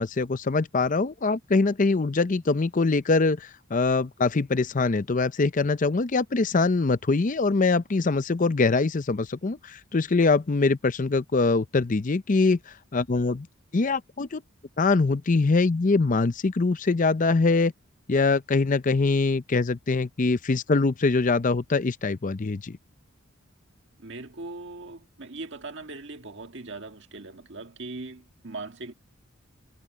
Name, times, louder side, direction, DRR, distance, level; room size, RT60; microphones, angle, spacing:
voice 1, 0.0-12.6 12.9-13.5 13.7-14.4 14.8-17.7 18.1-22.8, left 3 dB, 40° left, 0.5 m, -23 dB
voice 2, 24.0-28.9, right 3 dB, 55° right, 1.8 m, -40 dB
head